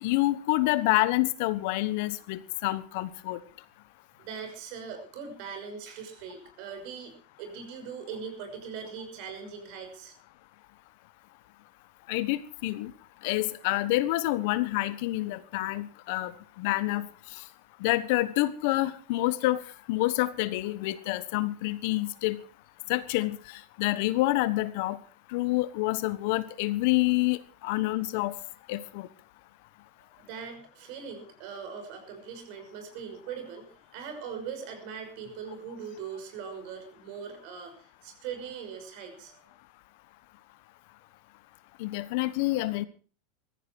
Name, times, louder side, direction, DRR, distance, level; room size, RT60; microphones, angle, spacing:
voice 1, 0.0-3.4 12.1-12.9 13.2-16.3 16.6-17.1 17.8-19.6 19.9-22.4 22.9-23.4 23.8-25.0 25.3-28.3 28.7-29.1 41.8-42.8, left 18 dB, 65° left, 15 dB, 1.2 m, -27 dB
voice 2, 4.2-7.1 7.4-10.1 30.2-39.4, right 6 dB, 60° right, 7 dB, 5.9 m, -41 dB
16.5 x 14.0 x 4.7 m, 0.39 s
hypercardioid pair, 115°, 0 cm